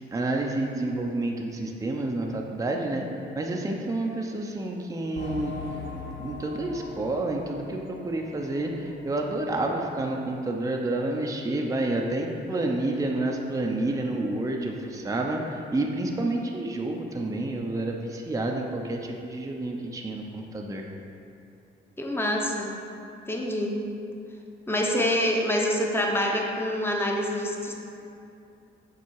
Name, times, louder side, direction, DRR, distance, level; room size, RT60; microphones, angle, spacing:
voice 1, 0.1-3.1 3.4-5.5 6.2-20.9, right 2 dB, 15° right, 1 dB, 0.6 m, -29 dB
sound 1, 5.2-9.4 9.8-9.9 10.4-10.5, left 3 dB, 65° left, 0.8 m, -40 dB
voice 2, 22.0-22.7 23.3-23.8 24.7-27.7, left 1 dB, 10° left, 0 dB, 0.9 m, -26 dB
7.1 x 4.0 x 4.7 m, 2.6 s
cardioid pair, 90°, 20 cm